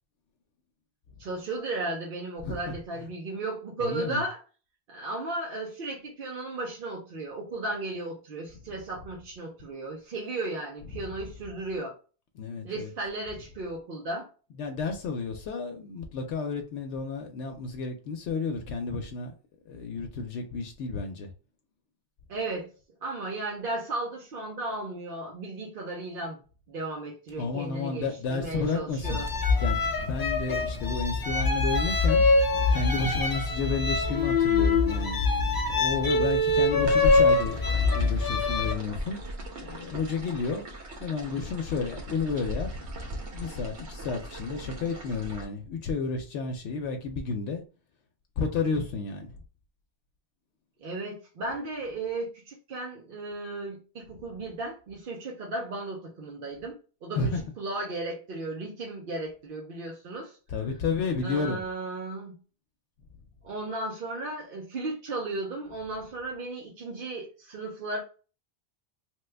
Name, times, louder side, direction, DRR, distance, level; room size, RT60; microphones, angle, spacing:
voice 1, 1.2-4.4 4.9-12.0 12.6-14.3 22.3-22.7 23.0-26.4 26.7-29.3 50.8-60.4 61.2-62.3 63.4-68.0, right 2 dB, 60° right, 0.8 m, -35 dB
voice 2, 3.8-4.2 12.4-12.9 14.6-19.3 19.7-21.3 27.4-29.2 29.6-32.2 32.7-35.2 35.7-39.2 39.6-40.6 41.0-42.8 43.3-47.6 48.4-49.3 57.2-57.4 60.5-61.6, left 4 dB, 90° left, 0.9 m, -31 dB
sound 1, 29.0-38.7, left 3 dB, 35° left, 0.3 m, -24 dB
sound 2, 36.9-45.4, equal, 85° right, 1.1 m, -38 dB
3.1 x 2.2 x 3.2 m
omnidirectional pair, 1.1 m